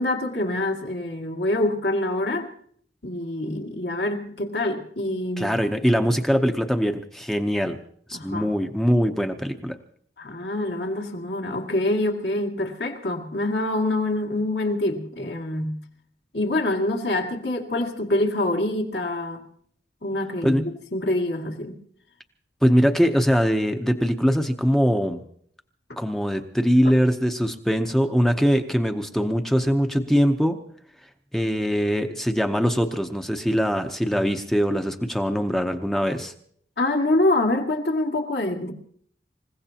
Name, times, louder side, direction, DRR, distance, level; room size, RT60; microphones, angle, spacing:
voice 1, 0.0-2.5 3.0-5.6 8.1-8.5 10.2-15.8 16.3-19.4 20.0-21.8 26.8-26.9 36.8-38.7, left 1 dB, 70° left, 2 dB, 2.4 m, -25 dB
voice 2, 5.4-7.8 8.1-9.8 20.4-20.6 22.6-25.2 26.0-30.6 31.3-36.3, equal, ahead, 5 dB, 0.8 m, -22 dB
27.5 x 16.5 x 2.9 m, 0.62 s
head